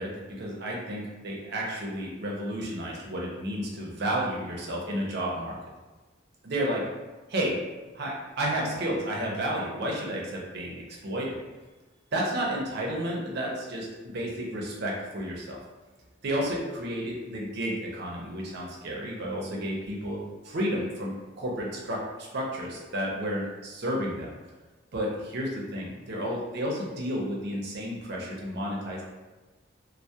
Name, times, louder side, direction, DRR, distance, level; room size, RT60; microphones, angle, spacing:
voice 1, 0.0-5.5 6.4-6.9 7.3-7.6 7.9-11.4 12.1-15.6 16.2-20.2 20.4-24.3 24.9-29.0, equal, 55° right, -3 dB, 0.5 m, -31 dB
2.2 x 2.1 x 2.7 m, 1.2 s
head